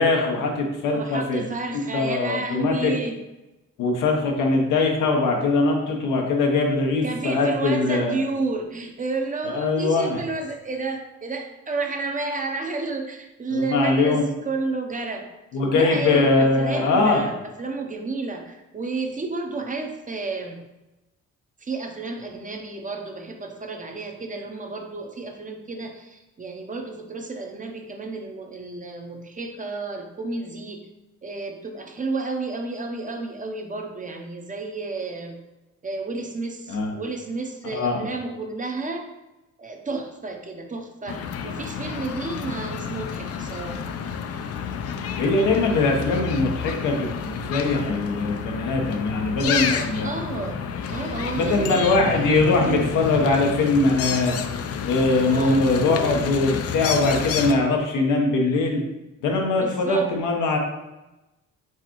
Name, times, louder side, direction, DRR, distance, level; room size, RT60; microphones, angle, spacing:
voice 1, 0.0-1.4 1.9-2.9 3.8-8.2 9.5-10.2 13.5-14.3 15.5-17.3 36.7-36.9 37.6-38.0 45.2-50.1 51.3-54.3 54.8-58.8 59.2-60.6, left 3 dB, 90° left, 1 dB, 0.9 m, -22 dB
voice 2, 0.9-3.2 7.0-15.2 15.7-20.6 21.6-30.8 31.2-35.4 35.8-39.1 39.6-44.0 49.4-51.9 52.6-52.9 55.2-55.7 59.6-60.1, right 3 dB, 25° right, 3 dB, 0.7 m, -31 dB
sound 1, 41.1-57.5, left 7 dB, 55° left, 0.4 m, -30 dB
4.6 x 3.6 x 3.0 m, 1.0 s
cardioid pair, 90°, 30 cm